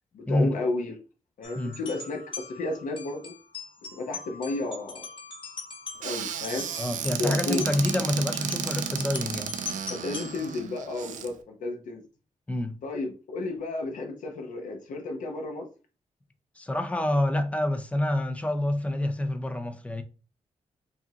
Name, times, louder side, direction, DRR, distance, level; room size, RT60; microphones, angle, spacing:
voice 1, 0.1-1.0 1.4-3.3 3.9-5.0 6.0-6.7 7.0-7.6 9.9-12.0 12.8-15.7, left 2 dB, 85° left, 0.9 m, -32 dB
sound 1, 1.4-10.6, left 4 dB, 40° left, 1.1 m, -42 dB
Squeak / Cupboard open or close, 6.0-11.3, right 8 dB, 80° right, 0.5 m, -33 dB
voice 2, 6.8-9.5 12.5-12.7 16.6-20.0, left 1 dB, 10° left, 0.5 m, -27 dB
4.8 x 2.8 x 2.8 m
wide cardioid pair, 150°, 13 cm